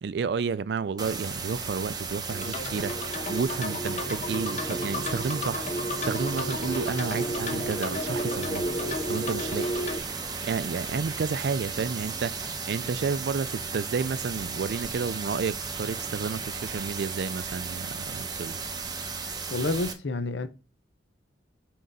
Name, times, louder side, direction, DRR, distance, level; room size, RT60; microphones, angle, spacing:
voice 1, 0.0-5.7 6.0-8.7 9.1-9.7 10.4-18.6, right 5 dB, 60° right, 0.3 m, -31 dB
sound 1, 1.0-19.9, right 5 dB, 20° right, 0.8 m, -35 dB
sound 2, 2.3-10.0, equal, 40° left, 0.9 m, -32 dB
Motorcycle, 3.5-16.5, equal, 5° left, 1.6 m, -45 dB
voice 2, 19.5-20.5, left 2 dB, 75° left, 0.7 m, -29 dB
6.3 x 3.9 x 5.3 m
head